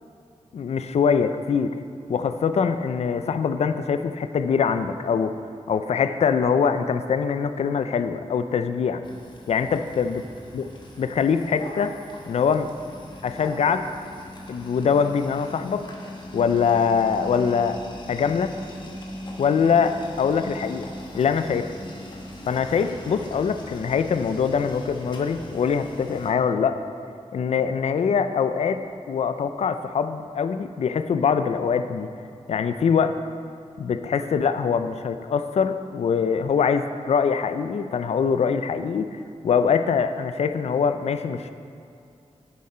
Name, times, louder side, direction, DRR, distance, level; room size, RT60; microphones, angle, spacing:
voice 1, 0.5-1.7 2.1-5.3 5.7-9.0 9.5-10.2 10.5-10.6 11.0-11.9 12.3-12.7 13.2-13.9 14.5-15.8 16.3-17.8 18.1-18.6 19.4-21.7 22.5-26.8 27.3-32.1 32.5-33.2 33.8-39.2 39.4-41.5, left 6 dB, 65° left, 10 dB, 0.4 m, -23 dB
sound 1, 9.0-26.3, left 1 dB, 40° left, 1.1 m, -40 dB
9.9 x 7.4 x 4.3 m, 2.5 s
wide cardioid pair, 175°, 12 cm